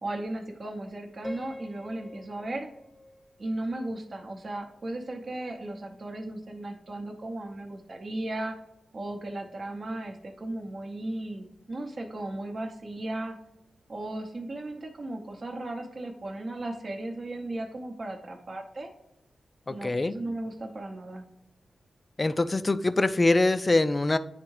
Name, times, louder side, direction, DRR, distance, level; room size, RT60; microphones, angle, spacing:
voice 1, 0.0-2.7 3.4-8.6 8.9-13.4 13.9-18.9 19.7-21.2, right 1 dB, 50° right, 2 dB, 0.7 m, -36 dB
Piano, 1.2-4.3, left 1 dB, 5° left, 0.7 m, -46 dB
voice 2, 19.7-20.2 22.2-24.2, left 2 dB, 30° left, 12 dB, 0.3 m, -24 dB
8.9 x 3.5 x 3.2 m, 0.87 s
cardioid pair, 60°, 0 cm